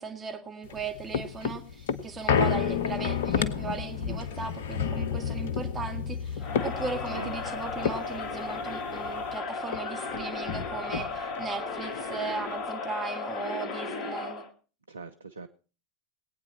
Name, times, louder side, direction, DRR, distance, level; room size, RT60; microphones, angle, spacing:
voice 1, 0.0-14.5, right 5 dB, 25° right, 4 dB, 2.1 m, -37 dB
sound 1, 0.6-9.4 9.7-9.8 10.1-11.5 11.9-12.0, left 7 dB, 65° left, 0.9 m, -31 dB
Crowd, 6.4-14.5, left 4 dB, 45° left, 1.7 m, -35 dB
voice 2, 6.8-7.4 14.9-15.5, right 4 dB, 85° right, 9 dB, 0.6 m, -42 dB
21.0 x 9.1 x 4.2 m, 0.36 s
figure-of-eight pair, 80°, 0 cm